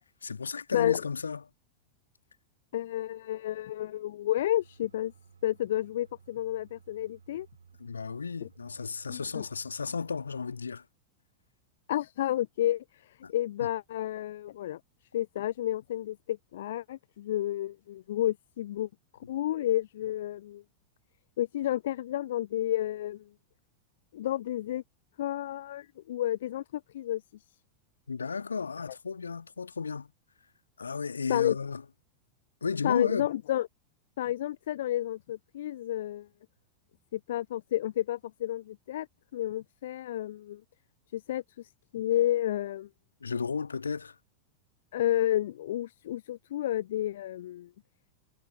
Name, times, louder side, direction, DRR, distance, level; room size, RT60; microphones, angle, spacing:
voice 1, 0.2-1.5 7.8-10.8 13.2-13.3 28.1-30.1 30.8-31.8 32.6-33.3 43.2-44.2, left 5 dB, 75° left, 2.0 m, -33 dB
voice 2, 2.7-5.1 5.4-7.5 8.4-8.5 9.1-9.4 11.9-14.8 15.1-18.9 19.3-20.6 21.4-23.2 24.1-24.8 25.2-27.2 31.3-31.6 32.8-33.7 34.2-36.3 37.1-39.1 39.3-40.6 41.1-42.9 44.9-47.7, left 13 dB, 60° left, 0.4 m, -31 dB
sound 1, 4.4-10.4, right 6 dB, 75° right, 5.3 m, -57 dB
figure-of-eight pair, 90°, 0 cm